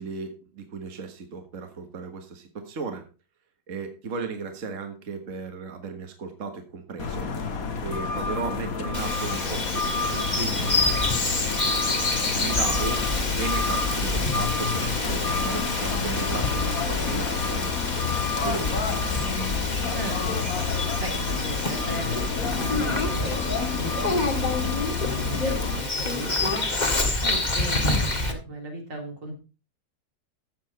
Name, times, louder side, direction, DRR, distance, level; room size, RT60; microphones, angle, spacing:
voice 1, 0.0-3.0 3.7-7.3 7.8-11.5 12.3-13.1 13.4-18.2 18.4-19.5, right 5 dB, 45° right, 5 dB, 1.9 m, -36 dB
sound 1, 7.0-25.8, left 5 dB, 55° left, 1.8 m, -29 dB
Bird vocalization bird call bird song, 8.9-28.3, left 2 dB, 25° left, 1.8 m, -28 dB
voice 2, 19.9-20.7 21.0-26.8 27.2-29.4, equal, 80° right, 1 dB, 4.3 m, -37 dB
14.5 x 7.4 x 4.2 m, 0.32 s
omnidirectional pair, 1.9 m